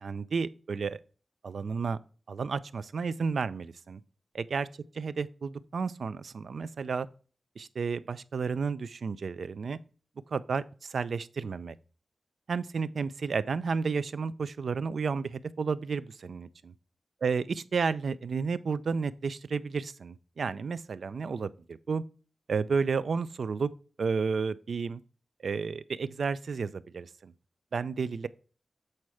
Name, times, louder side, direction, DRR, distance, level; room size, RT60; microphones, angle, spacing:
voice 1, 0.0-1.0 1.4-2.0 2.3-4.0 4.3-4.7 5.0-7.1 7.6-9.8 10.3-11.7 12.5-16.7 17.2-17.4 17.7-22.0 22.5-23.7 24.0-25.0 25.4-27.3 27.7-28.3, right 5 dB, 75° right, 0.4 m, -32 dB
7.8 x 4.3 x 4.8 m
wide cardioid pair, 145°, 0 cm